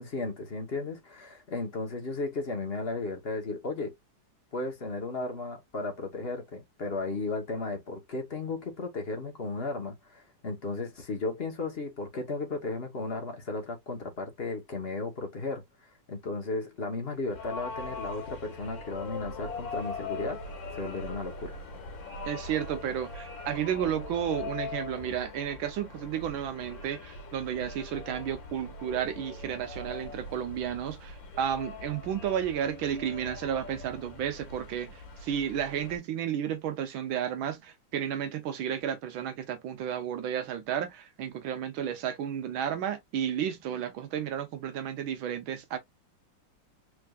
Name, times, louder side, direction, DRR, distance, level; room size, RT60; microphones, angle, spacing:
voice 1, 0.0-3.9 4.5-15.6 16.1-20.4 20.7-21.5, left 3 dB, 35° left, 1.1 m, -35 dB
sound 1, 17.3-36.0, left 3 dB, 70° left, 2.4 m, -41 dB
voice 2, 22.3-45.8, right 9 dB, 80° right, 1.7 m, -32 dB
4.7 x 3.3 x 2.4 m
omnidirectional pair, 2.2 m